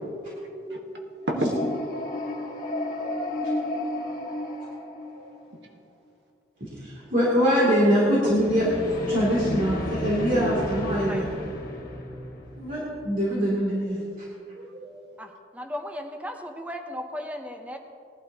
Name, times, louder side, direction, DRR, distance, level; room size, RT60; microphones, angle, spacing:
voice 1, 0.3-0.9 1.3-1.5 2.1-2.3 2.6-3.2 5.1-5.3 14.5-15.1, right 1 dB, 80° right, 1 dB, 1.5 m, -34 dB
sound 1, 1.2-5.5 8.1-13.1, left 1 dB, 50° left, 1.7 m, -32 dB
voice 2, 6.6-8.7 9.1-11.2 12.5-14.0, equal, 50° right, -7 dB, 2.8 m, -23 dB
voice 3, 15.2-17.8, equal, 10° right, 4 dB, 0.7 m, -36 dB
19.5 x 11.5 x 2.9 m, 2.4 s
head